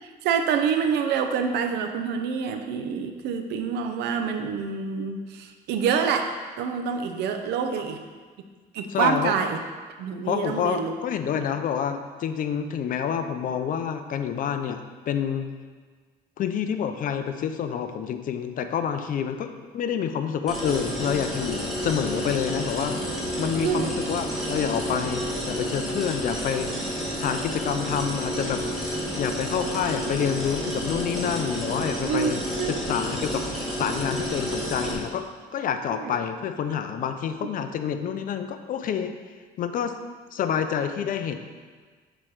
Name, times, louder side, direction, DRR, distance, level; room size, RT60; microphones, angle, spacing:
voice 1, 0.0-6.3 6.6-8.0 8.7-9.6 10.0-10.9 23.6-24.0 32.0-32.8 35.9-36.2, right 6 dB, 80° right, 6 dB, 0.7 m, -27 dB
voice 2, 8.9-9.3 10.3-15.5 16.4-19.5 19.7-23.0 23.4-26.7 27.2-28.6 29.2-32.4 32.7-33.4 33.8-35.2 35.5-39.1 39.6-39.9 40.3-41.4, left 8 dB, 55° left, 8 dB, 0.5 m, -28 dB
sound 1, 20.5-34.9, equal, ahead, 2.1 m, -30 dB
6.1 x 4.4 x 4.7 m, 1.5 s
cardioid pair, 110°, 17 cm